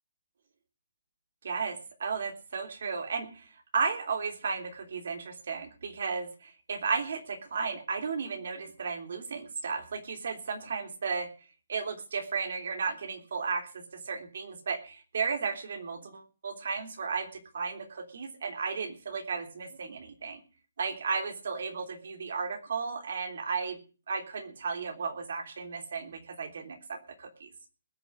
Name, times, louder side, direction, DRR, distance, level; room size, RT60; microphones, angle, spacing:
voice 1, 1.4-11.3 11.7-20.4 20.8-23.8 24.1-27.5, right 5 dB, 55° right, 5 dB, 3.2 m, -34 dB
20.0 x 7.0 x 6.3 m, 0.36 s
hypercardioid pair, 170°, 0 cm